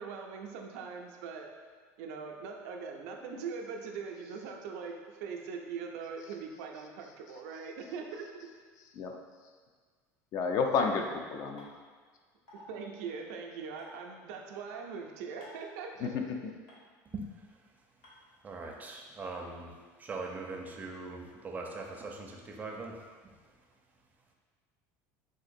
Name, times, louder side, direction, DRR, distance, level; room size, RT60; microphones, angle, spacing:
voice 1, 0.0-1.5 2.0-8.5 12.5-16.1 16.4-16.5, right 5 dB, 85° right, 2 dB, 0.4 m, -41 dB
voice 2, 10.3-11.7 16.0-16.2, left 5 dB, 50° left, 3 dB, 0.4 m, -30 dB
sound 1, 11.6-11.7 12.5-12.6 13.8-13.9 15.4-15.7 16.7-16.8 18.0-18.1, left 1 dB, 75° left, 1.1 m, -52 dB
voice 3, 17.1-17.6 18.4-23.4, right 3 dB, 20° right, 1 dB, 0.4 m, -42 dB
3.8 x 2.5 x 2.5 m, 1.5 s
supercardioid pair, 120°, 8 cm